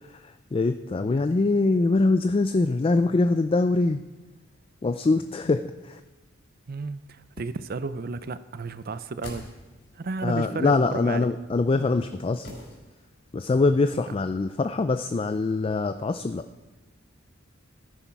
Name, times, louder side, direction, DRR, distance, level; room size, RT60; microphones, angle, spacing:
voice 1, 0.1-4.0 4.8-6.0 10.2-12.5 13.3-16.4, left 3 dB, 30° left, 9 dB, 0.3 m, -23 dB
voice 2, 6.7-9.5 9.9-11.3, right 3 dB, 50° right, 13 dB, 0.5 m, -33 dB
sound 1, 8.8-10.0 12.4-13.3 13.6-13.7, left 1 dB, 65° left, 4.5 m, -44 dB
14.0 x 9.9 x 4.7 m, 1.2 s
head